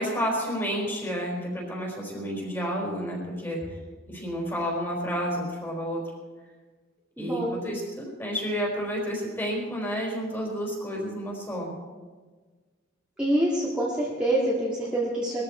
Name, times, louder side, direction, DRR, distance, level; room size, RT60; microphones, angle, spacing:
voice 1, 0.0-3.6 4.1-6.0 7.2-11.7, equal, 10° left, -2 dB, 4.4 m, -30 dB
voice 2, 7.2-7.7 13.2-15.4, right 1 dB, 5° right, -7 dB, 2.2 m, -26 dB
21.5 x 14.0 x 4.5 m, 1.4 s
head